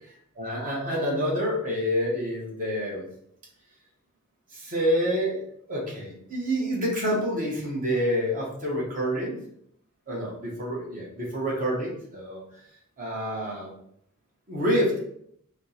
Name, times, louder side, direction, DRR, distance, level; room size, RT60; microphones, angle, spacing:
voice 1, 0.3-3.0 4.5-5.4 5.7-9.4 10.1-12.4 13.0-13.7 14.5-15.0, equal, 35° right, -3 dB, 0.9 m, -27 dB
4.2 x 2.1 x 2.7 m, 0.68 s
head